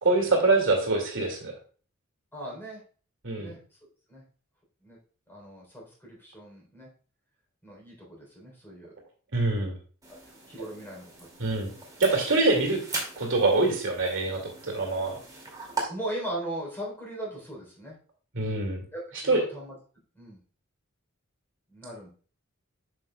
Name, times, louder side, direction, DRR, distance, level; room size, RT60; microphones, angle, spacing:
voice 1, 0.0-1.5 3.2-3.5 9.3-9.8 11.4-11.7 12.0-12.8 13.2-15.2 18.3-18.8 19.3-19.4, right 3 dB, 65° right, 1 dB, 2.2 m, -24 dB
voice 2, 2.3-2.8 3.4-3.6 4.1-4.2 4.8-5.0 5.3-6.9 7.6-8.9 10.1-10.2 10.5-11.1 11.4-11.5 15.9-18.0 18.9-19.8 20.1-20.4 21.7-22.1, right 1 dB, 10° left, -3 dB, 3.4 m, -39 dB
sound 1, 10.0-15.8, right 3 dB, 15° right, 2.2 m, -39 dB
8.1 x 6.3 x 2.2 m, 0.40 s
head